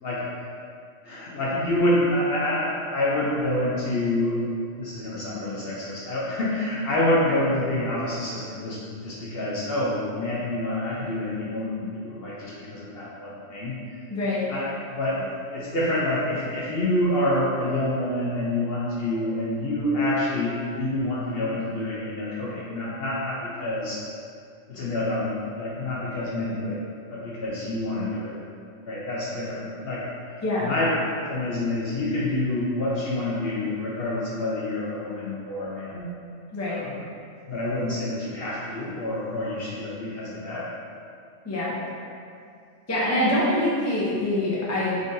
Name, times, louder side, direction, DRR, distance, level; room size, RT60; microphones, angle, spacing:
voice 1, 1.0-4.4 4.8-13.7 14.5-14.6 14.9-24.0 24.7-26.8 27.1-28.4 28.8-30.9 31.2-36.1 36.7-37.0 37.5-40.7, left 1 dB, 60° left, -6 dB, 0.8 m, -27 dB
voice 2, 14.1-14.5 30.4-30.7 36.5-36.8 41.4-41.8 42.9-45.0, left 1 dB, 15° left, -7 dB, 0.6 m, -25 dB
3.8 x 3.7 x 2.6 m, 2.3 s
omnidirectional pair, 1.3 m